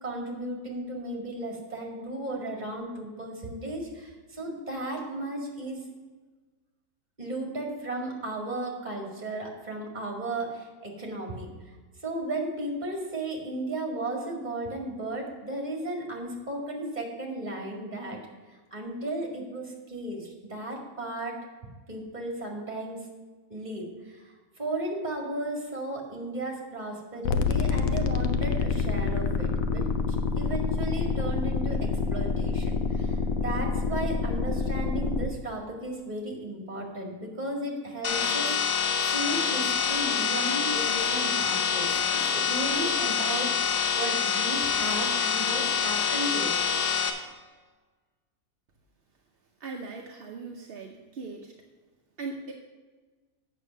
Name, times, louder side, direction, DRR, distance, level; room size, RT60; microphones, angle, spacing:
voice 1, 0.0-5.8 7.2-11.5 12.0-18.2 18.7-21.4 21.9-23.0 23.5-24.3 24.6-29.8 30.1-46.6, right 1 dB, 25° right, 0 dB, 2.0 m, -35 dB
sound 1, 27.2-35.3, left 5 dB, 65° left, 1.0 m, -27 dB
sound 2, 38.0-47.1, left 6 dB, 85° left, 1.6 m, -26 dB
voice 2, 49.6-51.5 52.2-52.5, right 4 dB, 50° right, 1 dB, 0.8 m, -39 dB
8.3 x 6.7 x 6.4 m, 1.3 s
omnidirectional pair, 1.7 m